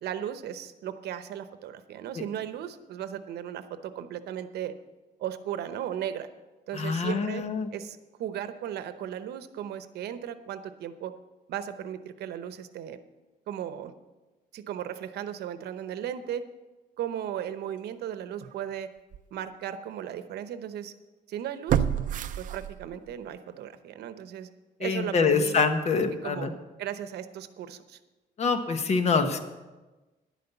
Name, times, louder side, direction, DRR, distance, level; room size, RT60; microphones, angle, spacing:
voice 1, 0.0-4.7 5.2-6.3 6.7-7.4 7.7-11.1 11.5-13.0 13.5-13.9 14.5-16.4 17.0-18.9 19.3-20.9 21.3-21.8 22.4-24.5 24.8-25.6 26.0-26.5 26.8-28.0, right 10 dB, 90° right, 11 dB, 0.8 m, -36 dB
voice 2, 6.7-7.7 24.8-26.5 28.4-29.4, left 5 dB, 40° left, 8 dB, 1.1 m, -25 dB
sound 1, 18.4-18.5 19.1-19.2 21.7-23.1 23.5-23.6, right 10 dB, 55° right, 0.5 m, -28 dB
11.0 x 9.3 x 6.9 m, 1.2 s
cardioid pair, 160°, 16 cm